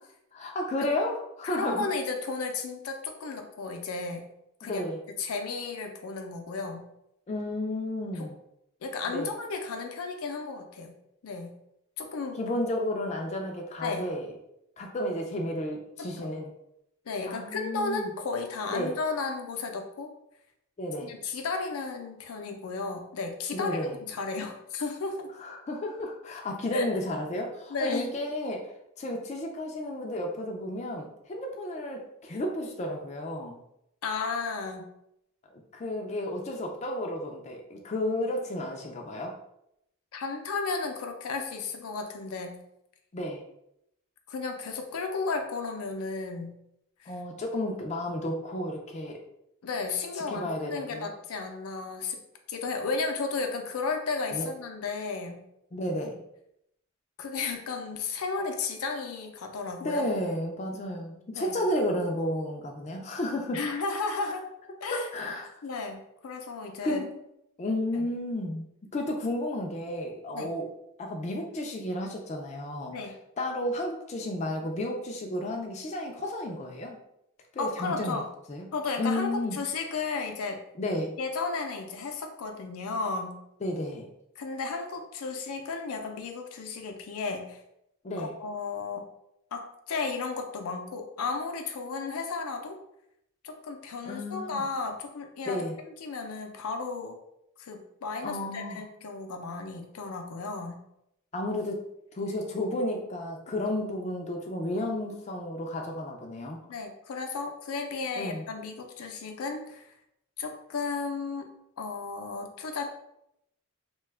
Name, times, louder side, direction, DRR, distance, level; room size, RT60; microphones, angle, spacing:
voice 1, 0.3-1.9 4.6-5.0 7.3-8.3 9.1-9.3 12.4-14.3 14.8-16.5 17.3-18.1 18.7-18.9 20.8-21.1 23.5-23.9 25.4-28.7 29.0-33.6 35.7-39.3 43.1-43.4 47.1-49.2 50.3-51.1 54.3-54.5 55.7-56.2 59.8-63.6 64.2-64.3 64.9-65.5 65.7-65.8 66.8-67.1 67.6-68.7 68.9-70.7 71.0-72.9 73.4-77.0 77.5-78.2 78.5-78.7 79.0-79.6 80.8-81.1 83.6-84.1 88.0-88.3 94.0-94.6 95.5-95.7 98.2-98.8 101.3-101.8 102.1-106.6 108.2-108.4, left 1 dB, 30° left, 2 dB, 0.3 m, -32 dB
voice 2, 1.4-4.2 4.6-4.8 5.2-6.8 8.2-8.3 8.8-11.0 11.2-11.5 12.0-12.4 13.8-14.1 16.0-16.3 17.1-20.1 21.0-25.3 26.7-27.0 27.7-28.1 34.0-34.9 40.1-42.6 44.3-46.6 47.0-47.1 49.6-52.2 52.5-55.4 57.2-60.0 61.3-61.6 63.5-64.5 64.8-65.1 65.6-67.0 67.9-68.1 70.3-70.6 72.9-73.2 77.6-78.3 78.7-80.6 81.2-83.4 84.4-87.6 88.2-89.1 89.5-92.8 93.4-95.6 96.0-97.2 97.6-100.8 106.7-109.9 110.4-111.5 111.8-112.8, left 4 dB, 90° left, 4 dB, 0.5 m, -34 dB
2.8 x 2.2 x 3.3 m, 0.79 s
head